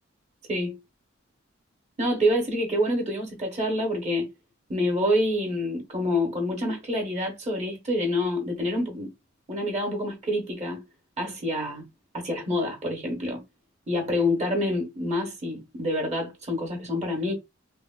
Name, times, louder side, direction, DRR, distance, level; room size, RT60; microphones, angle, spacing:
voice 1, 2.0-4.3 4.7-9.1 9.5-10.8 11.2-11.8 12.1-13.4 13.9-17.3, left 1 dB, 35° right, 0.7 m, -27 dB
2.9 x 2.0 x 2.2 m
head